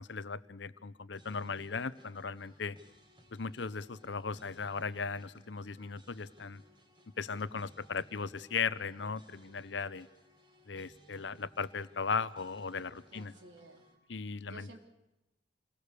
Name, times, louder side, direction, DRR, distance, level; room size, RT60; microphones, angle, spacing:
voice 1, 0.0-2.8 3.3-6.6 7.2-10.1 10.7-13.3 14.1-14.8, left 5 dB, 70° left, 16 dB, 0.8 m, -37 dB
sound 1, 1.1-14.0, equal, 30° right, 3.8 m, -62 dB
voice 2, 13.1-13.9 14.5-14.8, right 2 dB, 70° right, 3 dB, 3.6 m, -53 dB
26.5 x 21.0 x 6.8 m, 0.92 s
head